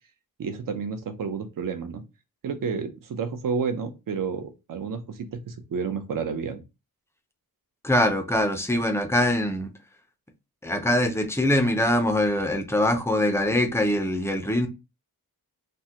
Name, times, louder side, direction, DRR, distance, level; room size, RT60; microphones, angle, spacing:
voice 1, 0.4-2.0 2.4-6.6, right 5 dB, 65° right, 0.6 m, -30 dB
voice 2, 7.8-9.7 10.6-14.7, left 1 dB, 10° left, 0.3 m, -23 dB
3.5 x 2.1 x 2.7 m
wide cardioid pair, 150°, 36 cm